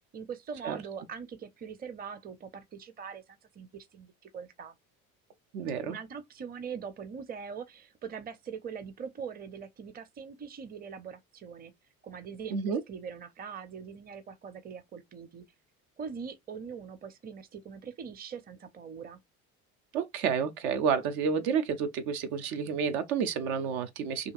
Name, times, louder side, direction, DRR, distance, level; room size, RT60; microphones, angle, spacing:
voice 1, 0.1-4.8 5.9-11.7 12.0-15.4 16.0-19.2, right 6 dB, 20° right, 0.5 m, -42 dB
voice 2, 5.5-6.0 12.5-12.8 19.9-24.3, right 6 dB, 75° right, 0.7 m, -30 dB
2.8 x 2.6 x 2.4 m
hypercardioid pair, 65°, 43 cm